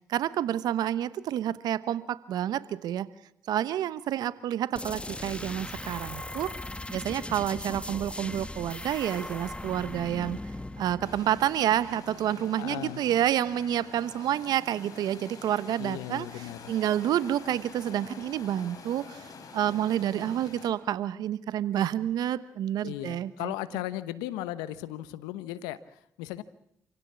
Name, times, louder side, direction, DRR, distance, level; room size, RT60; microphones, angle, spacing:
voice 1, 0.1-3.1 3.5-6.5 6.9-10.4 10.8-16.3 16.7-23.5, right 11 dB, 75° right, 16 dB, 1.0 m, -29 dB
sound 1, 4.8-12.3, left 2 dB, 15° left, 1.4 m, -39 dB
sound 2, 11.0-20.7, left 5 dB, 65° left, 3.9 m, -47 dB
voice 2, 12.6-13.0 15.8-16.7 22.8-26.4, left 14 dB, 90° left, 15 dB, 0.9 m, -36 dB
27.5 x 16.5 x 8.5 m, 0.76 s
hypercardioid pair, 45°, 7 cm